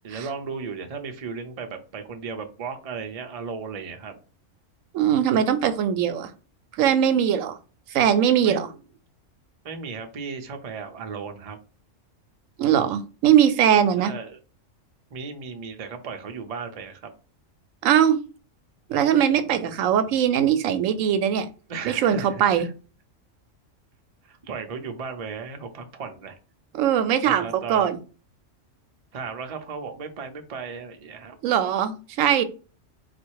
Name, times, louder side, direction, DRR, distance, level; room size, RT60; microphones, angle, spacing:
voice 1, 0.0-4.2 8.4-8.7 9.6-11.6 14.0-14.4 15.1-17.1 21.7-22.7 24.3-26.4 27.2-27.9 29.1-31.4, right 5 dB, 45° right, 5 dB, 0.5 m, -35 dB
voice 2, 4.9-6.3 6.8-7.6 7.9-8.7 12.6-14.1 17.8-18.2 18.9-21.5 21.8-22.7 26.7-28.0 31.4-32.4, right 9 dB, 85° right, 11 dB, 1.0 m, -21 dB
4.1 x 2.4 x 4.6 m, 0.35 s
omnidirectional pair, 1.3 m